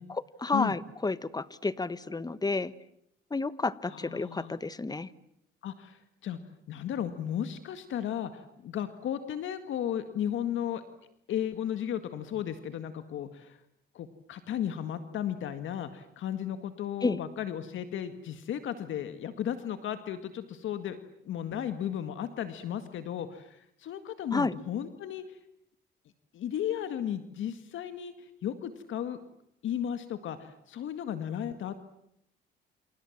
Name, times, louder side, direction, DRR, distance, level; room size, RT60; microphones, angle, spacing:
voice 1, 0.1-2.7 3.3-5.1 17.0-17.2 24.3-24.5, left 3 dB, 20° left, 16 dB, 1.3 m, -31 dB
voice 2, 3.9-4.6 5.6-6.4 6.7-10.8 11.3-13.6 13.9-21.0 21.3-25.4 26.3-29.2 29.6-31.8, left 10 dB, 75° left, 9 dB, 1.9 m, -35 dB
28.5 x 28.5 x 7.4 m, 0.74 s
cardioid pair, 90°, 20 cm